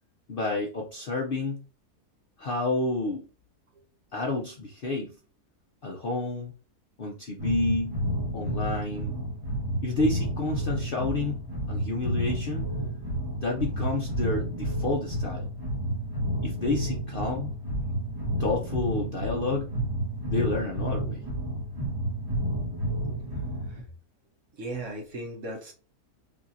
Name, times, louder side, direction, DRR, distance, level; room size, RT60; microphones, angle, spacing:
voice 1, 0.3-1.6 2.4-3.2 4.1-5.1 5.8-6.5 7.0-8.0 8.3-9.2 9.8-12.7 13.4-15.5 16.4-17.6 18.4-19.7 20.2-21.2, left 2 dB, 55° left, -1 dB, 0.6 m, -30 dB
sound 1, 7.4-23.8, right 1 dB, 15° right, 1.1 m, -31 dB
voice 2, 23.3-23.9 24.5-25.7, right 2 dB, 55° right, 1 dB, 1.4 m, -38 dB
5.2 x 2.7 x 2.7 m, 0.35 s
omnidirectional pair, 1.6 m